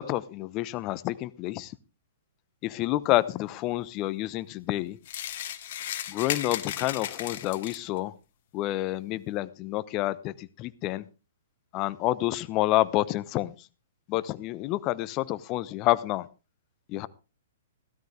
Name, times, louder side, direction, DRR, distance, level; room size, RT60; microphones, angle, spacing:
voice 1, 0.0-1.7 2.6-5.0 6.1-8.1 8.5-11.0 11.7-13.5 14.1-16.3 16.9-17.1, left 16 dB, 35° left, 17 dB, 0.9 m, -28 dB
sound 1, 5.0-8.0, left 11 dB, 55° left, 1.4 m, -35 dB
16.0 x 13.0 x 3.4 m, 0.31 s
hypercardioid pair, 120°, 0 cm